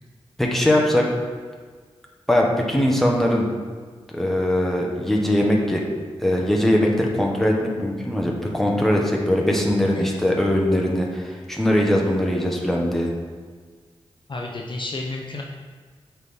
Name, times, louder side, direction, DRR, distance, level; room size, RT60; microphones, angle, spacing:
voice 1, 0.4-1.1 2.3-3.5 4.1-5.8 6.2-13.1, left 1 dB, 5° left, -1 dB, 1.4 m, -21 dB
voice 2, 14.3-15.4, left 2 dB, 50° left, 0 dB, 0.8 m, -31 dB
7.9 x 4.5 x 3.7 m, 1.5 s
cardioid pair, 50°, 11 cm